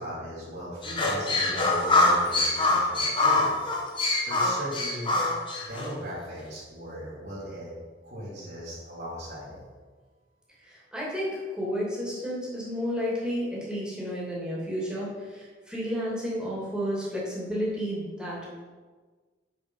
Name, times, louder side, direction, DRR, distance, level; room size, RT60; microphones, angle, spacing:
voice 1, 0.0-3.5 3.9-5.1 5.7-7.7 8.0-9.6, equal, 70° right, -11 dB, 2.8 m, -38 dB
sound 1, 0.8-5.9, left 2 dB, 30° left, 1.5 m, -24 dB
voice 2, 10.6-18.6, equal, 5° right, -6 dB, 2.6 m, -32 dB
6.9 x 6.8 x 5.5 m, 1.4 s
head